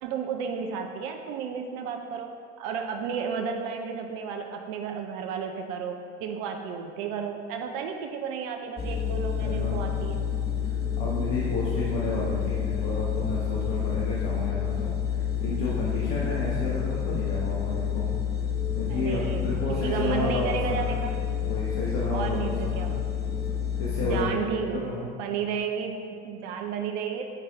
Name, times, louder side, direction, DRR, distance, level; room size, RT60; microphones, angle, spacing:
voice 1, 0.0-10.2 18.9-21.1 22.1-23.0 24.0-24.9 25.2-27.2, right 6 dB, 75° right, 4 dB, 0.6 m, -32 dB
sound 1, 8.8-24.2, left 8 dB, 30° left, 0.9 m, -29 dB
voice 2, 9.4-9.9 11.0-18.1 18.7-20.9 21.4-22.9 23.8-25.1, left 2 dB, 75° left, -6 dB, 1.2 m, -31 dB
9.0 x 4.4 x 3.5 m, 2.4 s
hypercardioid pair, 65°, 32 cm